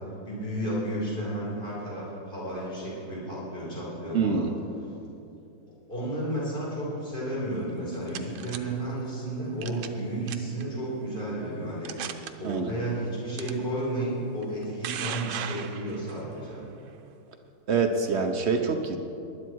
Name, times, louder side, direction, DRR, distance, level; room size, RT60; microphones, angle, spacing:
voice 1, 0.2-4.5 5.9-11.9 12.4-16.6, right 1 dB, 25° left, -7 dB, 4.7 m, -32 dB
voice 2, 4.1-4.5 12.4-12.7 17.7-19.0, right 5 dB, 55° right, 5 dB, 0.7 m, -25 dB
sound 1, 7.7-8.6 9.6-10.0 10.3-10.6 11.3-11.4 11.8-12.3 13.4-13.5 14.4-16.2, right 10 dB, 80° right, 1.5 m, -36 dB
20.0 x 11.0 x 4.6 m, 2.7 s
omnidirectional pair, 2.2 m